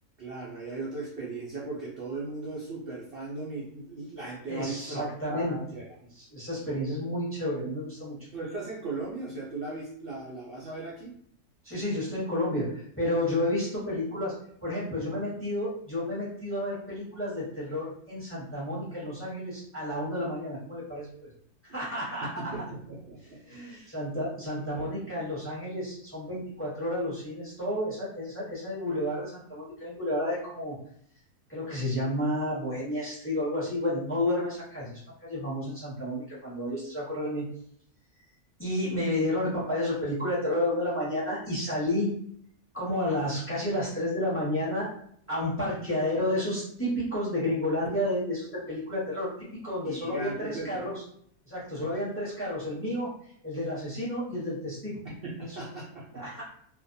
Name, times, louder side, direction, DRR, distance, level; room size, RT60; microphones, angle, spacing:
voice 1, 0.2-5.8 8.3-11.1 22.4-23.4 23.7-23.9 24.3-24.9 49.8-50.9 55.0-56.2, right 3 dB, 75° right, -5 dB, 0.5 m, -38 dB
voice 2, 4.5-5.6 6.1-8.2 11.6-14.3 14.6-21.1 21.7-22.5 23.4-30.7 31.5-37.5 38.6-42.1 42.7-44.9 45.3-49.3 49.6-50.9 51.4-55.0 56.1-56.4, left 1 dB, 10° left, -8 dB, 0.7 m, -31 dB
2.5 x 2.2 x 2.5 m, 0.65 s
omnidirectional pair, 1.6 m